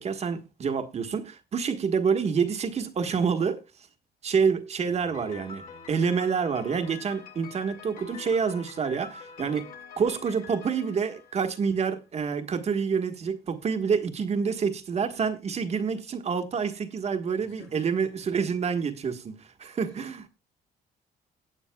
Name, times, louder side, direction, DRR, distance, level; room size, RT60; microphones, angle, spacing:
voice 1, 0.0-3.6 4.2-9.7 10.0-20.3, right 6 dB, 40° right, 1.4 m, -27 dB
voice 2, 4.8-5.9 17.3-18.3 19.8-20.0, left 5 dB, 75° left, 6.7 m, -52 dB
Piano, 5.1-12.0, left 5 dB, 55° left, 2.4 m, -45 dB
17.0 x 8.5 x 2.3 m
cardioid pair, 110°, 17 cm